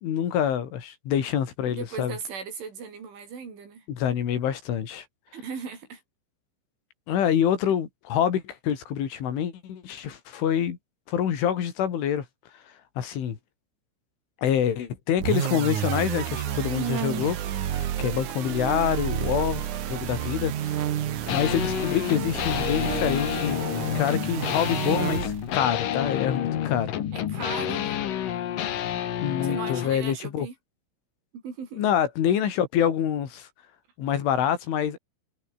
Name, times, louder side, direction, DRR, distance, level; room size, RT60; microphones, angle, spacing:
voice 1, 0.0-2.2 3.9-5.1 7.1-10.8 11.1-12.3 13.0-13.4 14.4-17.4 17.7-20.9 21.3-23.7 24.0-26.9 29.2-30.5 31.8-33.5 34.0-35.0, left 9 dB, 85° left, 5.6 m, -26 dB
voice 2, 1.7-3.9 5.3-6.0 27.1-27.9 29.4-30.5 31.3-31.8, right 6 dB, 80° right, 8.6 m, -37 dB
sound 1, 15.2-25.6, right 11 dB, 60° right, 2.2 m, -30 dB
sound 2, 21.3-30.0, left 10 dB, 55° left, 2.9 m, -29 dB
omnidirectional pair, 5.4 m